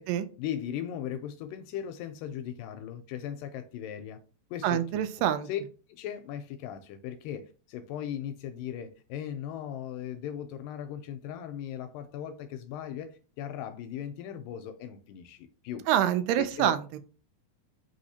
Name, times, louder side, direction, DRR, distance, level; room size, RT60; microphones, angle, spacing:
voice 1, 0.4-4.2 4.5-5.0 5.5-5.6 5.9-15.9 16.4-16.8, left 10 dB, 85° left, 2.1 m, -38 dB
voice 2, 4.6-5.5 15.9-17.0, right 11 dB, 85° right, 2.2 m, -26 dB
5.0 x 3.5 x 2.7 m
omnidirectional pair, 4.0 m